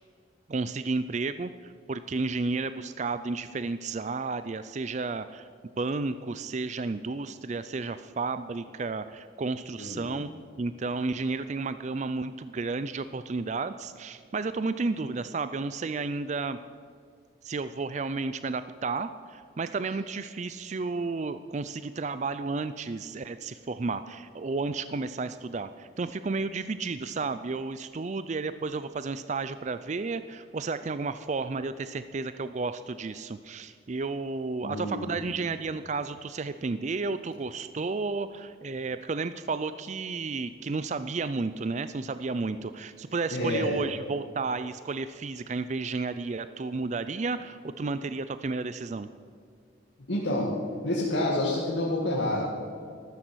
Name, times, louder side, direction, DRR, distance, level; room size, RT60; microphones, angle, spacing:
voice 1, 0.5-5.5 5.8-10.3 10.6-16.6 17.4-49.1, right 3 dB, 35° right, 12 dB, 0.4 m, -32 dB
voice 2, 9.8-10.1 34.6-35.3 43.3-43.8 50.1-50.5 50.8-52.4, left 1 dB, 65° left, -4 dB, 2.2 m, -28 dB
14.0 x 13.0 x 6.3 m, 2.2 s
head